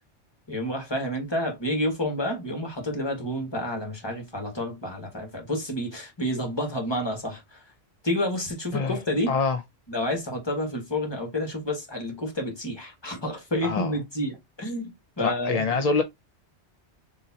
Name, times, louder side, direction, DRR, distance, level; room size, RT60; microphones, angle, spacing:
voice 1, 0.5-7.6 8.0-9.4 9.9-15.8, left 1 dB, 25° left, 1.5 m, -29 dB
voice 2, 9.3-9.6 13.6-13.9 15.2-16.0, left 4 dB, 50° left, 0.4 m, -25 dB
6.6 x 2.9 x 2.8 m
omnidirectional pair, 1.2 m